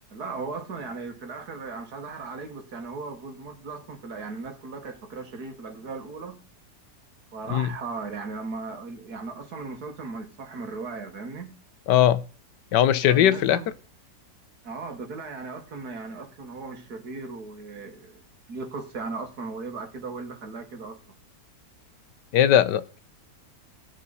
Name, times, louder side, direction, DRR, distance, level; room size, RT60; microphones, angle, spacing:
voice 1, 0.1-6.4 7.3-11.6 13.0-13.7 14.6-18.2 18.5-21.0, right 4 dB, 65° right, 2.1 m, -37 dB
voice 2, 11.9-12.2 12.7-13.6 22.3-23.0, left 11 dB, 90° left, 1.4 m, -19 dB
18.0 x 6.1 x 4.1 m
omnidirectional pair, 1.8 m